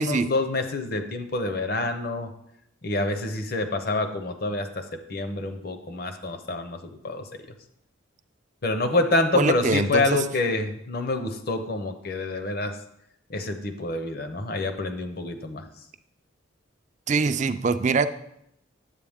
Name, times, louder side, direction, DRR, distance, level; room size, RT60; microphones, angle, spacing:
voice 1, 0.0-2.3 2.8-7.4 8.6-12.8 13.3-15.7, left 2 dB, 50° left, 7 dB, 0.8 m, -27 dB
voice 2, 9.3-10.2 17.1-18.1, right 4 dB, 35° right, 11 dB, 0.4 m, -23 dB
10.0 x 7.8 x 3.6 m, 0.77 s
head